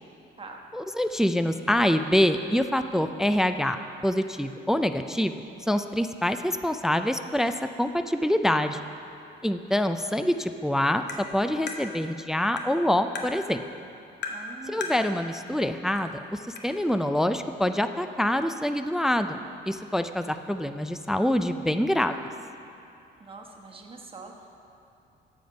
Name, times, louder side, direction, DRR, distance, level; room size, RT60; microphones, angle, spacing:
voice 1, 0.7-3.8 4.0-8.8 9.4-11.0 11.3-13.6 14.7-19.4 19.7-22.1, left 1 dB, ahead, 9 dB, 0.3 m, -25 dB
Tap, 11.1-11.2 11.7-11.8 12.6-12.7 13.1-13.3 14.2-14.4 14.8-15.0 16.0-16.1 16.6-16.7, left 5 dB, 60° left, 1.1 m, -34 dB
voice 2, 14.2-15.0 23.2-24.5, right 3 dB, 25° right, 1 dB, 1.2 m, -44 dB
13.5 x 5.2 x 5.2 m, 2.8 s
cardioid pair, 90°, 20 cm